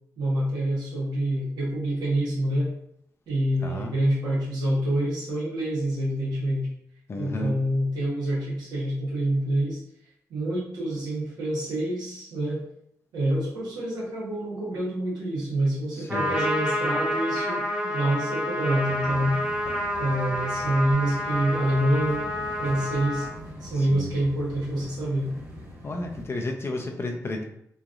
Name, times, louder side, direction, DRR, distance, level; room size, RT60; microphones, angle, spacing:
voice 1, 0.2-2.7 3.3-6.7 7.2-9.8 10.3-12.7 13.1-19.4 20.0-22.3 22.6-23.3 23.6-25.3, right 1 dB, 90° right, -5 dB, 1.0 m, -27 dB
voice 2, 3.6-3.9 7.1-7.5 15.9-16.3 18.9-19.8 23.8-24.1 25.8-27.4, left 2 dB, 40° left, 2 dB, 0.6 m, -33 dB
Trumpet, 16.1-23.3, left 1 dB, 20° right, 0.9 m, -28 dB
sound 1, 19.1-26.2, equal, 50° right, 1.2 m, -43 dB
3.1 x 2.5 x 2.4 m, 0.72 s
cardioid pair, 60°, 7 cm